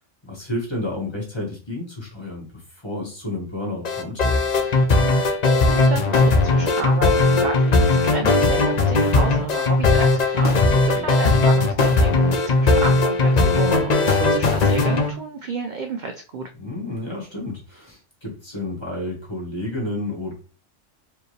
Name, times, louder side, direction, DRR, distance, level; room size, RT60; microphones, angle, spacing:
voice 1, 0.3-2.5 2.8-4.3 10.6-11.1 16.6-20.3, left 1 dB, 20° left, -3 dB, 1.5 m, -31 dB
sound 1, 3.8-15.1, left 3 dB, 50° left, 0.5 m, -18 dB
voice 2, 5.7-16.5, right 3 dB, 65° right, 6 dB, 0.4 m, -31 dB
4.6 x 2.9 x 3.1 m, 0.36 s
omnidirectional pair, 1.3 m